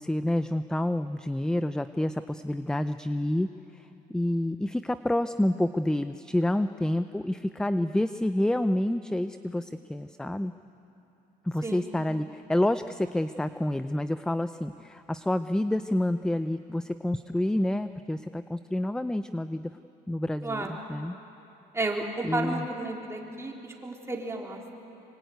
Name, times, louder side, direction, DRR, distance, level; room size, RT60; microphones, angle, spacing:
voice 1, 0.0-10.5 11.4-19.7 20.1-21.2 22.2-22.6, left 1 dB, 5° left, 11 dB, 0.5 m, -28 dB
voice 2, 21.7-24.7, right 2 dB, 15° right, -1 dB, 4.0 m, -32 dB
25.5 x 24.0 x 9.4 m, 2.8 s
cardioid pair, 110°, 17 cm